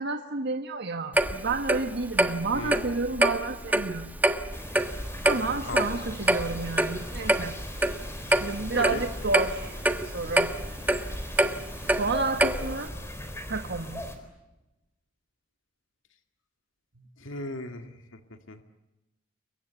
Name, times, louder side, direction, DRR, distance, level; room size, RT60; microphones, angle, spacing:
voice 1, 0.0-4.2 5.2-7.6 8.3-10.5 11.9-12.9 13.5-14.0 17.0-17.1, right 3 dB, 60° right, 6 dB, 1.5 m, -30 dB
Clock, 1.1-12.9, right 1 dB, 10° right, 1.2 m, -26 dB
sound 1, 4.5-14.2, equal, 15° left, 4.0 m, -39 dB
voice 2, 17.2-17.9 18.5-18.6, left 2 dB, 75° left, 6 dB, 2.1 m, -35 dB
29.0 x 24.0 x 8.3 m, 0.99 s
head